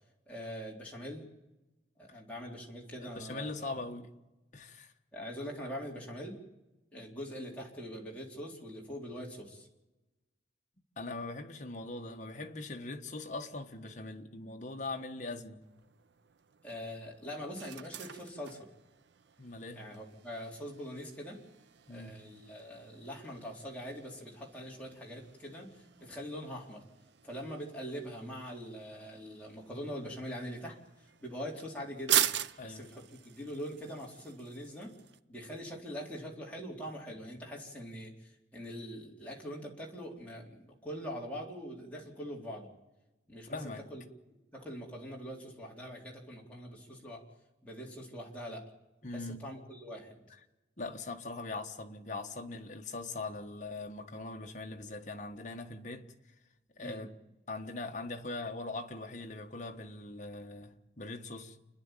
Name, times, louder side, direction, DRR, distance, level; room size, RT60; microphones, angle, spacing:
voice 1, 0.3-1.2 2.0-3.8 5.1-6.4 6.9-9.7 16.6-18.7 19.7-21.4 21.9-26.8 27.2-32.3 32.6-34.9 35.3-42.7 43.3-44.0 44.5-47.2 47.6-48.7 49.1-50.2 56.8-57.0, equal, 10° left, 3.8 m, -43 dB
voice 2, 3.0-4.1 4.5-4.9 11.0-15.6 19.4-19.8 21.9-22.1 32.6-32.8 43.4-43.8 49.0-49.4 50.8-56.0 56.8-57.1 57.5-61.6, left 2 dB, 40° left, 1.5 m, -41 dB
sound 1, 15.6-35.2, right 10 dB, 70° right, 0.6 m, -41 dB
29.0 x 10.5 x 9.1 m
head